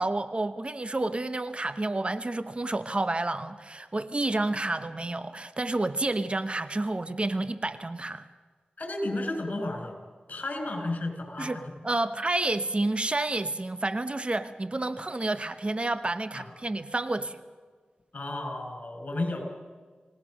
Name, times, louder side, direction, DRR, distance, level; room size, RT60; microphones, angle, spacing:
voice 1, 0.0-8.3 11.4-17.4, right 2 dB, 35° right, 12 dB, 1.0 m, -30 dB
voice 2, 8.8-10.0 10.3-11.6 16.3-16.5 18.1-19.4, left 2 dB, 50° left, 4 dB, 5.4 m, -32 dB
28.5 x 17.5 x 6.4 m, 1.5 s
cardioid pair, 50°, 3 cm